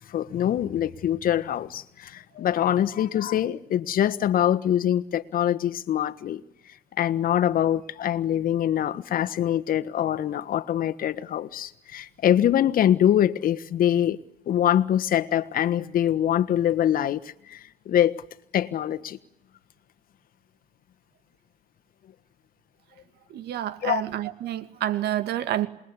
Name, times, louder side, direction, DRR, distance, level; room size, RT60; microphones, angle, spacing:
voice 1, 0.1-6.4 7.0-14.2 14.5-18.2 18.5-19.2 23.8-24.0, left 11 dB, 55° left, 1.4 m, -24 dB
voice 2, 23.3-25.7, right 12 dB, 75° right, 2.4 m, -28 dB
28.0 x 21.5 x 9.8 m
cardioid pair, 110°, 17 cm